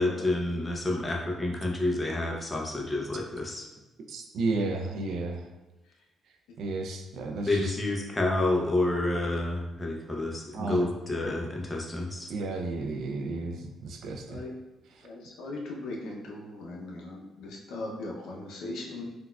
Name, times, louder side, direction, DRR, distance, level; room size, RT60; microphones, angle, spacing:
voice 1, 0.0-3.7 7.5-12.3, left 2 dB, 20° left, 0 dB, 0.6 m, -29 dB
voice 2, 4.1-5.4 6.6-7.7 10.5-10.9 12.3-14.4 15.0-15.1, right 3 dB, 75° right, 4 dB, 0.3 m, -33 dB
voice 3, 15.0-19.1, left 2 dB, 80° left, -1 dB, 0.5 m, -39 dB
3.9 x 2.3 x 2.2 m, 1.1 s
cardioid pair, 90°, 0 cm